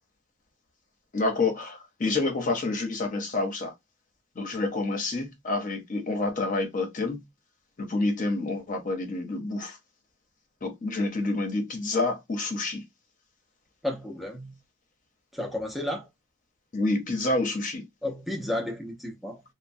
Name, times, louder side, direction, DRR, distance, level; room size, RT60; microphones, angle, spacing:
voice 1, 1.1-3.7 4.4-7.2 7.8-9.8 10.6-12.8 16.7-17.9, left 2 dB, 45° left, 0.7 m, -28 dB
voice 2, 13.8-14.5 15.3-16.1 18.0-19.4, left 1 dB, ahead, 0.5 m, -32 dB
3.0 x 2.1 x 2.6 m
head